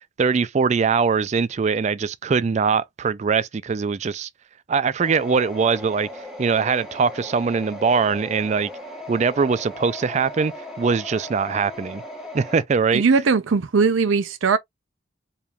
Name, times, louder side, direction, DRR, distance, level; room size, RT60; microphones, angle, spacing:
voice 1, 0.2-4.3 4.7-6.1 6.4-8.7 9.1-12.0 12.3-13.0, right 5 dB, 35° right, 0.3 m, -22 dB
sound 1, 5.0-12.6, left 1 dB, ahead, 1.5 m, -37 dB
voice 2, 12.9-14.6, right 5 dB, 85° right, 0.5 m, -19 dB
4.7 x 3.5 x 2.4 m
head